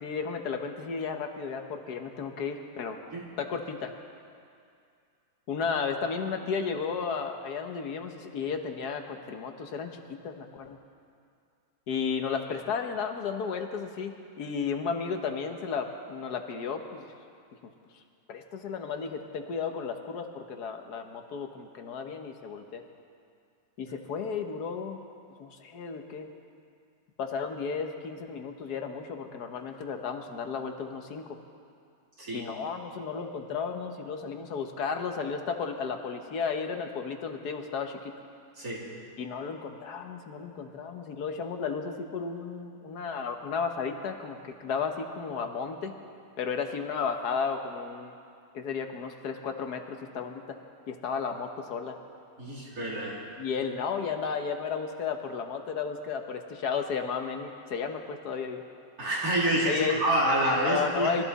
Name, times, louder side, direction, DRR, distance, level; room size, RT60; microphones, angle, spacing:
voice 1, 0.0-3.9 5.5-10.8 11.9-17.1 17.6-17.7 18.3-22.8 23.8-25.0 25.4-26.3 27.2-31.4 32.3-38.1 39.2-46.0 46.4-48.1 48.5-50.6 50.9-52.0 53.4-58.6 59.7-60.0 60.6-61.2, left 5 dB, 75° left, 5 dB, 1.6 m, -33 dB
voice 2, 38.6-38.9 52.4-53.2 59.0-61.2, right 1 dB, 60° right, -5 dB, 2.8 m, -27 dB
23.0 x 13.5 x 4.1 m, 2.4 s
omnidirectional pair, 1.7 m